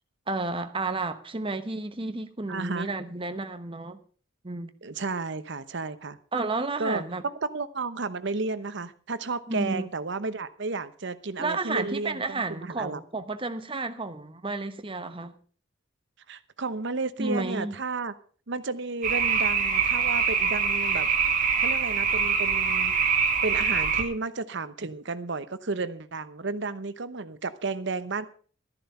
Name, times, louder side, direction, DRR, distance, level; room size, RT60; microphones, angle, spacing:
voice 1, 0.3-4.0 4.4-4.7 6.3-7.2 9.5-9.9 11.4-15.3 17.2-17.7, right 3 dB, 25° right, 1.1 m, -31 dB
voice 2, 2.5-2.9 4.8-6.2 6.8-13.0 16.3-18.1 18.5-22.9 23.4-28.3, right 3 dB, 65° right, 1.0 m, -32 dB
sound 1, 19.0-24.0, right 6 dB, 45° right, 2.2 m, -24 dB
13.0 x 11.0 x 5.6 m
head